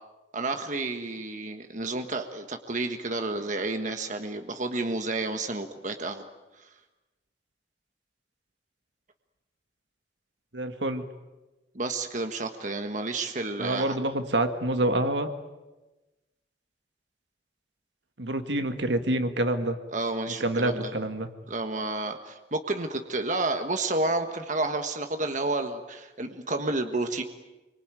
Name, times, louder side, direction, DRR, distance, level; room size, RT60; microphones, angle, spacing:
voice 1, 0.3-6.2 11.7-14.0 19.9-20.9 21.5-27.2, right 2 dB, 45° right, 6 dB, 1.5 m, -30 dB
voice 2, 10.5-11.0 13.6-15.3 18.2-19.8 20.4-21.3, right 1 dB, 70° right, 8 dB, 2.0 m, -27 dB
26.0 x 24.5 x 9.1 m, 1.1 s
head